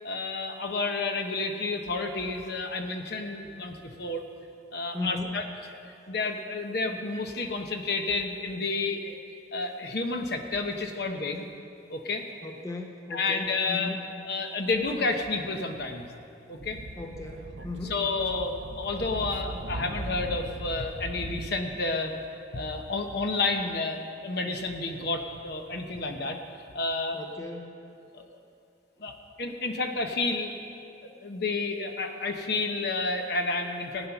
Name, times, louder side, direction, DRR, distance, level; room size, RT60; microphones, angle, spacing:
voice 1, 0.0-4.2 4.7-5.4 6.1-9.2 9.5-11.5 11.9-12.2 13.1-13.9 14.2-16.1 16.5-16.8 17.8-22.1 22.5-26.4 26.7-27.2 28.1-28.2 29.0-30.5 31.2-34.1, left 3 dB, 55° left, 4 dB, 1.0 m, -30 dB
voice 2, 4.9-5.4 12.4-14.0 17.0-18.0 27.1-27.8, left 2 dB, 15° left, 2 dB, 0.8 m, -37 dB
Speech / Wind, 16.6-21.5, right 2 dB, 65° right, 0.6 m, -39 dB
15.0 x 9.7 x 5.9 m, 2.6 s
head